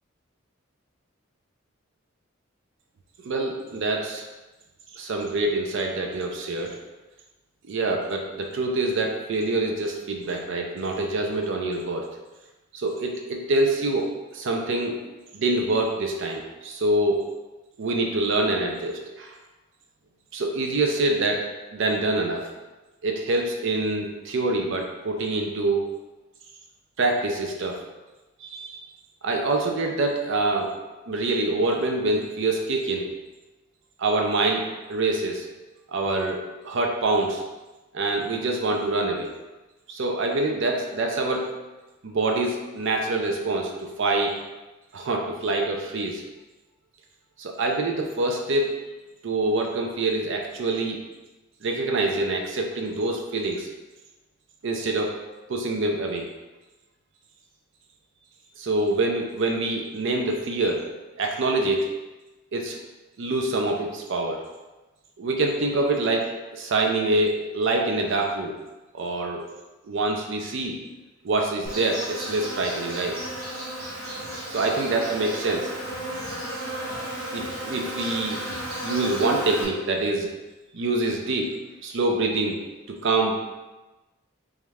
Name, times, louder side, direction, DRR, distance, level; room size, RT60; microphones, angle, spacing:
voice 1, 3.2-4.3 4.9-6.7 7.7-12.1 12.7-15.0 15.3-17.2 17.8-19.4 20.3-21.4 21.7-22.5 23.0-25.9 27.0-27.8 28.4-28.8 29.2-30.7 31.1-33.1 34.0-35.5 35.9-37.4 37.9-39.3 39.9-41.5 42.0-44.3 44.9-46.2 47.4-48.8 49.2-51.0 51.6-53.7 54.6-55.1 55.5-56.3 58.6-60.8 61.2-61.9 62.5-62.8 63.2-64.4 65.2-68.6 68.9-69.4 69.9-70.8 71.2-73.2 74.5-75.7 77.3-78.4 78.8-80.3 80.7-81.5 81.8-82.6 82.9-83.3, right 2 dB, 60° right, 2 dB, 0.5 m, -25 dB
Insect, 71.6-79.6, right 1 dB, 80° right, 1.2 m, -33 dB
3.5 x 3.1 x 3.4 m, 1.1 s
head